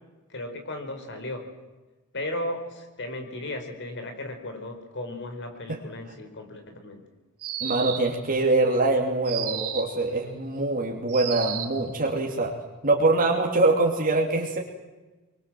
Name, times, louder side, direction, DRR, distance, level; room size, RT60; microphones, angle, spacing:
voice 1, 0.3-1.5 2.1-7.0, left 1 dB, 55° left, 6 dB, 4.7 m, -35 dB
sound 1, 7.4-8.2 9.3-10.0 11.1-11.8, right 9 dB, 90° right, 3.9 m, -33 dB
voice 2, 7.6-12.5 12.8-14.6, right 2 dB, 40° right, 0 dB, 2.7 m, -23 dB
26.0 x 23.5 x 7.7 m, 1.2 s
head